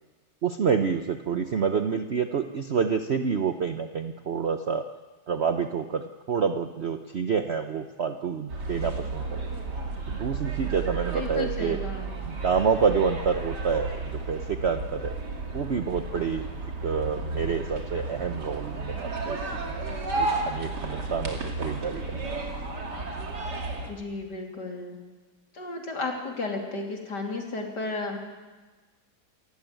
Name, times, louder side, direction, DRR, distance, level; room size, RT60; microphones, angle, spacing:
voice 1, 0.4-4.8 5.3-9.4 10.1-11.8 12.2-15.1 15.5-16.5 16.8-19.4 19.7-22.3, right 6 dB, 45° right, 8 dB, 1.0 m, -28 dB
sound 1, 8.5-23.9, right 3 dB, 80° right, 3.3 m, -33 dB
voice 2, 11.1-12.3 23.9-25.0 25.5-28.2, left 3 dB, 80° left, 2 dB, 3.8 m, -33 dB
27.5 x 14.5 x 9.1 m, 1.3 s
omnidirectional pair, 1.8 m